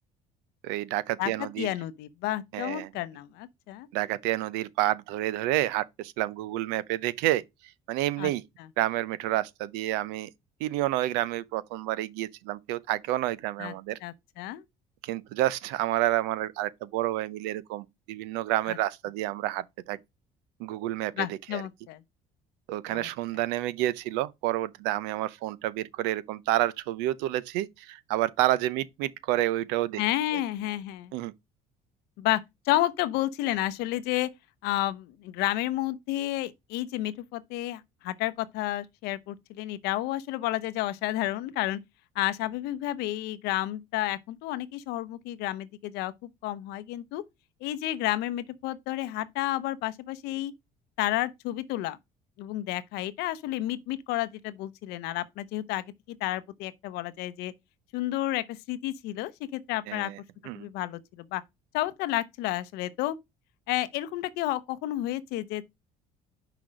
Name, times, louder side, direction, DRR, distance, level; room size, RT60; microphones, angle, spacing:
voice 1, 0.6-1.7 2.5-2.9 3.9-7.4 7.9-8.4 8.8-10.3 10.6-14.0 15.0-20.0 20.6-21.6 22.7-30.0 30.3-30.4 31.1-31.3 59.9-60.2 60.4-60.7, right 15 dB, 90° right, 0.6 m, -29 dB
voice 2, 1.2-3.9 8.2-8.3 13.6-13.7 14.0-14.6 18.7-18.8 21.2-22.0 22.9-23.1 30.0-31.1 32.2-34.3 34.6-41.8 42.2-47.2 47.6-50.5 51.0-52.0 52.4-55.8 56.2-57.5 57.9-60.1 60.5-61.4 61.7-63.2 63.7-65.6, left 15 dB, 80° left, 0.7 m, -31 dB
5.8 x 5.0 x 5.1 m
supercardioid pair, 90°, 17 cm